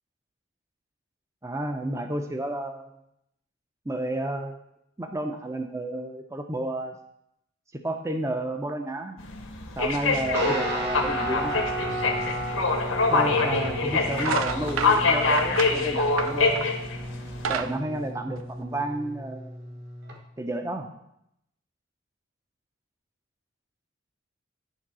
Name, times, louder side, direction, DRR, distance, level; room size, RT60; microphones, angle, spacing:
voice 1, 1.4-2.9 3.9-4.6 5.0-7.0 7.7-9.2 9.8-11.7 13.1-16.7 17.5-19.6 20.4-20.9, right 1 dB, 15° right, 5 dB, 0.6 m, -31 dB
sound 1, 9.2-17.6, left 3 dB, 75° left, 1.1 m, -25 dB
Guitar, 10.3-20.2, right 1 dB, 50° right, 1.3 m, -34 dB
sound 2, 13.5-13.7 14.1-16.8 17.2-18.9, right 7 dB, 80° right, 0.5 m, -32 dB
10.0 x 3.8 x 6.1 m, 0.78 s
head